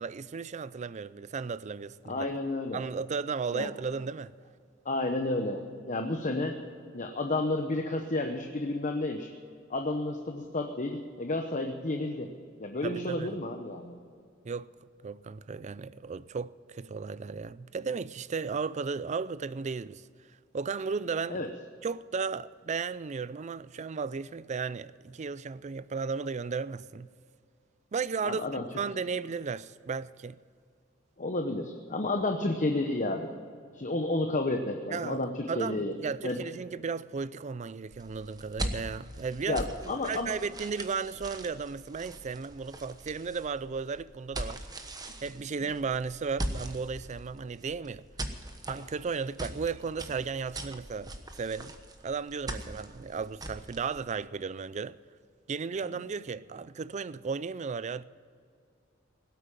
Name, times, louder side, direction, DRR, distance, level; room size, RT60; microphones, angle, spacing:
voice 1, 0.0-2.3 2.7-4.3 12.8-13.3 14.4-14.7 15.0-20.0 20.5-21.5 21.8-27.1 27.9-30.4 34.9-35.2 35.5-44.6 45.2-48.0 48.7-51.1 51.4-51.7 52.0-55.0 55.5-58.0, right 5 dB, 35° right, 0.4 m, -35 dB
voice 2, 2.1-2.8 3.5-3.7 4.8-5.6 5.9-6.6 6.9-9.3 9.7-12.3 12.6-14.0 21.3-21.5 28.2-28.7 31.2-33.3 33.7-35.9 36.2-36.4 39.5-40.3, left 2 dB, 40° left, 0.9 m, -31 dB
sound 1, 37.9-54.0, right 1 dB, 20° right, 1.1 m, -41 dB
17.5 x 8.4 x 9.1 m
head